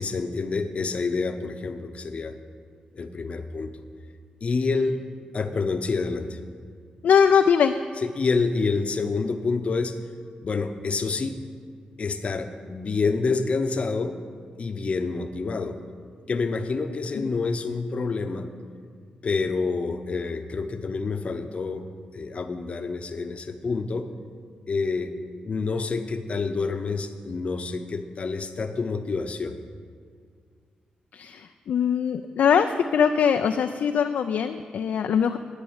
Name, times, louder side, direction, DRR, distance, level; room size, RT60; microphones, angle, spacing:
voice 1, 0.0-2.4 2.9-3.7 4.4-5.0 5.3-6.4 8.0-10.0 10.4-11.4 12.0-14.2 14.6-15.8 16.3-18.5 19.2-21.9 22.1-24.1 24.7-25.2 25.4-29.6, left 4 dB, 45° left, 8 dB, 0.8 m, -28 dB
voice 2, 7.0-7.8 31.1-35.4, left 7 dB, 75° left, 7 dB, 0.4 m, -21 dB
11.0 x 5.3 x 8.6 m, 2.1 s
cardioid pair, 85°, 3 cm